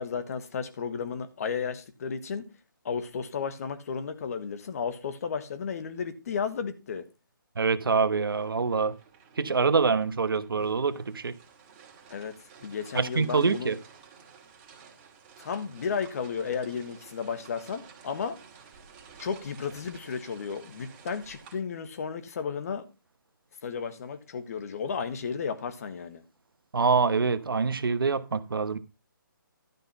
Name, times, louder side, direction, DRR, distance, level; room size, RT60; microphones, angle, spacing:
voice 1, 0.0-2.5 2.8-7.1 12.1-12.3 12.6-13.7 15.4-18.4 19.2-22.8 23.6-26.2, left 6 dB, 45° left, 1.5 m, -33 dB
voice 2, 7.6-8.9 9.4-11.4 12.9-13.8 26.7-28.8, right 5 dB, 80° right, 1.1 m, -25 dB
sound 1, 8.3-21.5, right 6 dB, 25° right, 2.4 m, -52 dB
12.5 x 5.5 x 5.7 m
hypercardioid pair, 160°, 12 cm